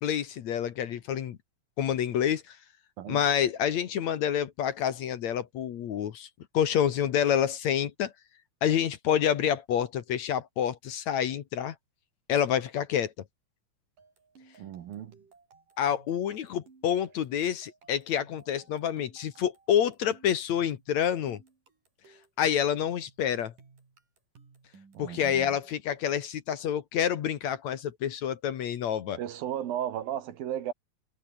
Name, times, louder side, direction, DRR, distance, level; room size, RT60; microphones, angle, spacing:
voice 1, 0.0-1.4 1.8-2.6 3.1-6.3 6.5-8.1 8.6-11.7 12.3-13.1 15.8-21.4 22.4-23.5 25.0-29.2, left 9 dB, 60° left, 2.4 m, -28 dB
sound 1, 14.0-26.3, right 5 dB, 65° right, 7.0 m, -59 dB
voice 2, 14.6-15.2 24.9-25.6 29.2-30.7, right 11 dB, 85° right, 3.6 m, -35 dB
omnidirectional pair, 4.0 m